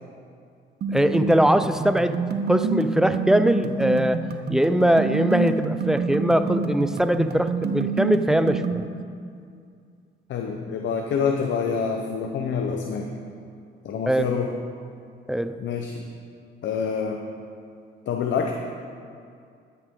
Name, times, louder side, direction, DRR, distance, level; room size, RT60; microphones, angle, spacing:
sound 1, 0.8-8.8, right 4 dB, 55° right, 0.9 m, -28 dB
voice 1, 0.9-2.2 2.5-8.8 14.1-14.3 15.3-15.6, right 1 dB, 5° right, 11 dB, 0.4 m, -21 dB
voice 2, 10.3-13.1 13.8-14.5 15.6-16.0 16.6-17.2 18.1-18.5, left 6 dB, 70° left, 2 dB, 0.8 m, -26 dB
12.0 x 9.8 x 3.7 m, 2.3 s
cardioid pair, 90°, 20 cm